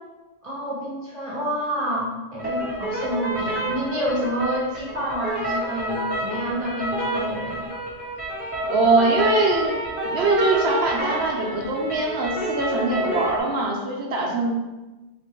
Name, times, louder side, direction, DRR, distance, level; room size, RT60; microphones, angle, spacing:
voice 1, 0.4-7.7, equal, 30° right, -5 dB, 1.1 m, -28 dB
sound 1, 2.4-13.4, right 1 dB, 10° right, 0.9 m, -29 dB
voice 2, 8.6-9.7 10.0-14.5, right 3 dB, 80° right, 0 dB, 1.0 m, -22 dB
3.6 x 2.6 x 4.3 m, 1.1 s
omnidirectional pair, 1.1 m